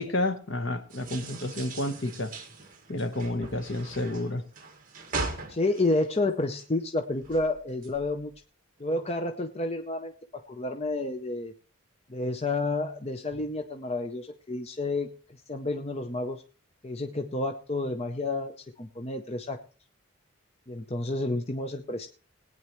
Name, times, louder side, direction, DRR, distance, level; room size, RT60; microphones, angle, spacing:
voice 1, 0.0-2.3 2.9-4.4, left 1 dB, 60° left, 1.1 m, -30 dB
sound 1, 0.9-6.8 7.1-8.3, right 3 dB, 40° right, 1.9 m, -39 dB
voice 2, 5.2-8.3 8.8-11.5 12.1-15.1 15.5-16.4 16.8-19.6 20.7-22.1, left 2 dB, 30° left, 0.7 m, -30 dB
20.0 x 9.4 x 3.1 m
head